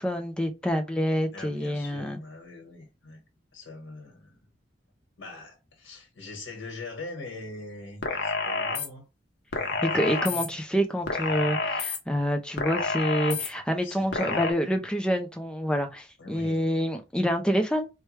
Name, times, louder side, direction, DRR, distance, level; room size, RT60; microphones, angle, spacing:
voice 1, 0.0-2.2 9.8-17.9, equal, 5° left, 0.5 m, -27 dB
voice 2, 1.3-3.2 3.5-4.5 5.2-9.1 9.5-10.5 13.8-14.5 16.2-16.6, left 2 dB, 90° left, 1.3 m, -42 dB
sound 1, 8.0-8.9 9.5-10.5 11.1-12.0 12.6-13.5 14.1-14.5, left 3 dB, 60° left, 0.8 m, -29 dB
4.5 x 2.2 x 3.2 m
head